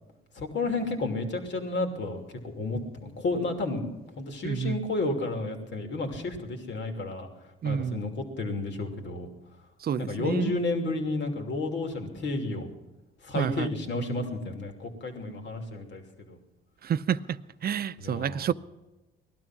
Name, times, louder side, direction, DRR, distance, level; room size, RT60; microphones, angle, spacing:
voice 1, 0.4-3.9 4.2-7.3 7.6-9.3 10.0-12.7 13.2-16.0 16.3-16.4 18.0-18.5, left 2 dB, 65° left, 2.9 m, -31 dB
voice 2, 4.4-4.8 7.6-8.0 9.8-10.5 13.3-13.7 16.8-18.5, right 8 dB, 50° right, 0.6 m, -29 dB
19.5 x 12.5 x 6.0 m
cardioid pair, 90°, 20 cm